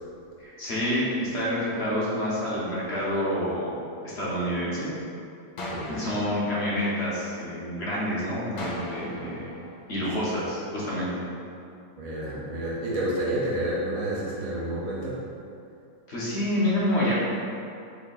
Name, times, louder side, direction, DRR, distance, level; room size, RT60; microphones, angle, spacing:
voice 1, 0.4-3.8 4.1-4.9 5.9-9.5 9.9-11.2 16.1-17.2, equal, 55° left, -8 dB, 1.1 m, -28 dB
sound 1, 5.6-7.6 8.6-10.6, equal, 70° left, 0.4 m, -39 dB
voice 2, 12.0-15.2, right 1 dB, 80° right, -6 dB, 1.3 m, -29 dB
3.6 x 2.7 x 3.9 m, 2.6 s
omnidirectional pair, 1.5 m